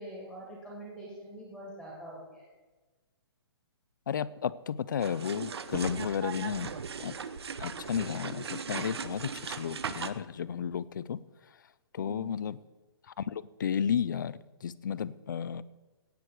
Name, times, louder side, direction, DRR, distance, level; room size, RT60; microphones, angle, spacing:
voice 1, 0.0-2.4 12.0-12.3, right 1 dB, 5° right, -4 dB, 2.2 m, -44 dB
voice 2, 4.1-6.7 7.0-7.1 7.6-11.2 11.9-12.6 13.2-15.6, left 8 dB, 50° left, 18 dB, 0.5 m, -33 dB
sound 1, 5.0-10.1, right 6 dB, 75° right, 0.9 m, -38 dB
17.0 x 8.4 x 4.7 m, 1.2 s
hypercardioid pair, 175°, 14 cm